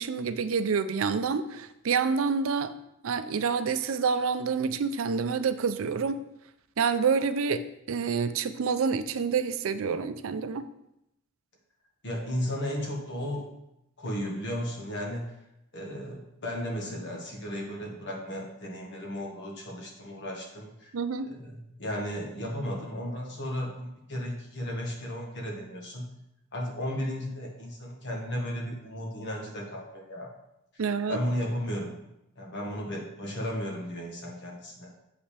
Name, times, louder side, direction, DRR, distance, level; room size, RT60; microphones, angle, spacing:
voice 1, 0.0-2.7 3.0-6.2 6.8-7.6 7.9-10.7 20.9-21.3 30.8-31.2, right 5 dB, 80° right, 12 dB, 0.5 m, -28 dB
voice 2, 12.0-13.5 14.0-15.3 15.7-20.9 21.2-26.0 26.5-30.3 31.1-32.0 32.4-34.9, equal, 60° left, -1 dB, 1.6 m, -34 dB
7.7 x 5.5 x 3.3 m, 0.83 s
head